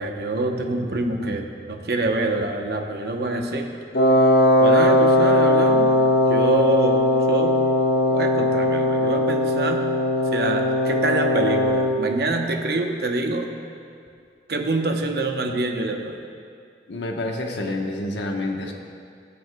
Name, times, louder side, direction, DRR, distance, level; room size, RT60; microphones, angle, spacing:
voice 1, 0.0-3.7 4.6-5.9 6.3-7.6 8.1-9.9 10.3-13.5 14.5-16.2, right 2 dB, 60° right, 3 dB, 0.9 m, -26 dB
Wind instrument woodwind instrument, 3.9-12.0, left 1 dB, 65° left, 0.9 m, -19 dB
voice 2, 16.9-18.7, left 2 dB, 90° left, 1 dB, 1.1 m, -28 dB
22.5 x 7.9 x 2.2 m, 2.3 s
head